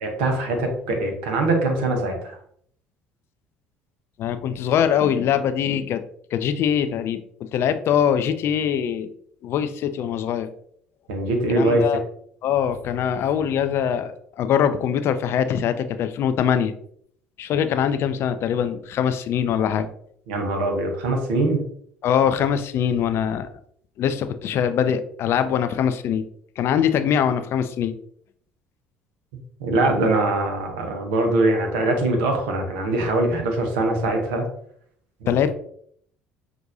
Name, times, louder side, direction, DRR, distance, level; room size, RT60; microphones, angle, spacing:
voice 1, 0.0-2.4 11.1-11.8 20.3-21.6 29.6-34.5, right 2 dB, 70° right, 3 dB, 0.9 m, -22 dB
voice 2, 4.2-6.0 6.3-9.1 9.4-10.5 11.6-12.0 12.4-16.7 17.4-19.9 22.0-23.5 24.0-26.2 26.6-27.9 35.3-35.6, left 8 dB, 50° left, 10 dB, 0.4 m, -22 dB
6.0 x 2.6 x 2.6 m, 0.65 s
figure-of-eight pair, 60°, 5 cm